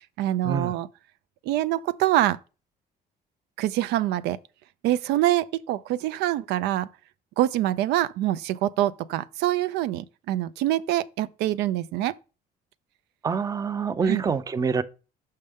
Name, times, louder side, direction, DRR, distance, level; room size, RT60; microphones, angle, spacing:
voice 1, 0.2-0.9 1.5-2.4 3.6-4.4 4.8-6.9 7.4-12.1 14.0-14.2, right 14 dB, 85° right, 0.4 m, -25 dB
voice 2, 13.2-14.8, right 5 dB, 20° right, 0.5 m, -26 dB
6.5 x 5.4 x 3.5 m
cardioid pair, 110°, 17 cm